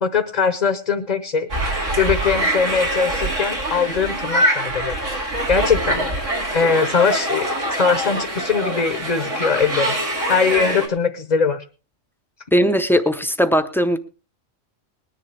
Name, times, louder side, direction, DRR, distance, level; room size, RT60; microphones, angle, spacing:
voice 1, 0.0-1.5 2.0-5.0 5.5-6.1 6.5-7.5 7.8-10.0 10.3-11.6, left 5 dB, 40° left, 10 dB, 0.8 m, -21 dB
sound 1, 1.5-10.9, right 1 dB, 85° right, 2.8 m, -24 dB
voice 2, 12.5-14.0, equal, ahead, 9 dB, 0.6 m, -18 dB
20.5 x 10.5 x 3.3 m, 0.33 s
omnidirectional pair, 1.2 m